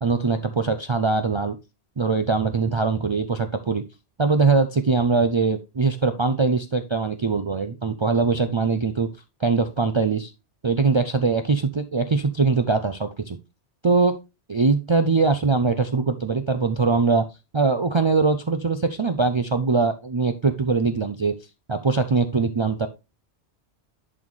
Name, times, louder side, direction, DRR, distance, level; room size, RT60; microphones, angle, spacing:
voice 1, 0.0-1.6 2.0-3.8 4.2-9.1 9.4-10.3 10.6-13.4 13.8-14.2 14.5-17.3 17.5-21.3 21.7-22.9, right 4 dB, 50° right, 7 dB, 0.3 m, -22 dB
11.0 x 4.2 x 3.1 m, 0.26 s
omnidirectional pair, 1.2 m